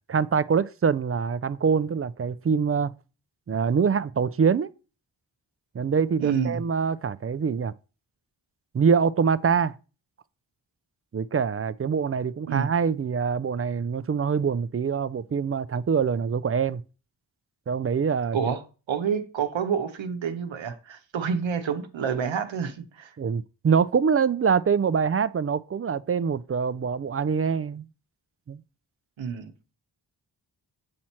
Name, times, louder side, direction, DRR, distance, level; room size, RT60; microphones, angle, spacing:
voice 1, 0.1-2.9 3.5-4.7 5.7-7.7 8.7-9.7 11.1-16.8 17.7-18.4 23.2-27.8 28.5-28.6, right 6 dB, 35° right, 0.4 m, -24 dB
voice 2, 6.2-6.6 12.5-12.7 18.3-18.6 18.9-23.2 29.2-29.5, right 7 dB, 90° right, 0.9 m, -28 dB
7.6 x 4.4 x 4.3 m
cardioid pair, 50°, 44 cm